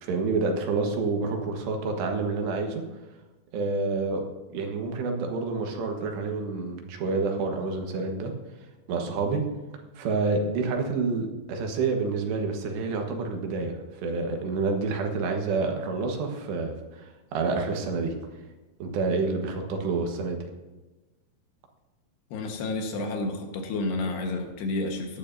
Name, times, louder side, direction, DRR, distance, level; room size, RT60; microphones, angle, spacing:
voice 1, 0.0-2.8 3.5-4.2 4.5-8.3 8.9-9.4 10.0-18.1 18.8-20.4, right 4 dB, 80° right, 2 dB, 3.6 m, -28 dB
voice 2, 22.3-25.2, left 2 dB, 75° left, 3 dB, 3.4 m, -30 dB
17.5 x 11.5 x 2.7 m, 1.1 s
omnidirectional pair, 4.9 m